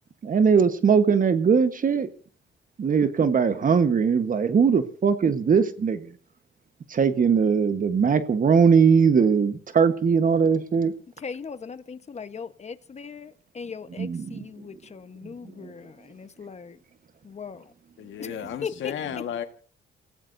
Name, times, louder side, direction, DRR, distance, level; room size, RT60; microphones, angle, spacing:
voice 1, 0.2-2.1 2.8-6.1 6.9-10.9 14.0-14.4 15.6-15.7, right 6 dB, 45° right, 1.3 m, -20 dB
voice 2, 11.2-16.8 17.2-17.7 18.2-19.2, left 6 dB, 35° left, 1.2 m, -39 dB
voice 3, 18.0-19.4, left 9 dB, 70° left, 1.7 m, -33 dB
29.5 x 17.0 x 2.7 m
cardioid pair, 90°, 20 cm